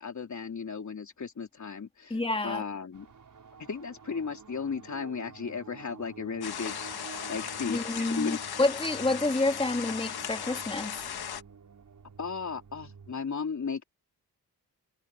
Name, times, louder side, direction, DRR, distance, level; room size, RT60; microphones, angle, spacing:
voice 1, 0.0-3.1 3.7-6.9 7.3-8.4 12.2-13.8, left 5 dB, 50° left, 3.4 m, -35 dB
voice 2, 2.1-2.6 7.7-10.9, left 2 dB, 15° left, 2.8 m, -28 dB
sound 1, 2.9-13.1, right 6 dB, 55° right, 6.5 m, -49 dB
sound 2, 6.4-11.4, left 8 dB, 75° left, 1.5 m, -37 dB
wide cardioid pair, 110°, 38 cm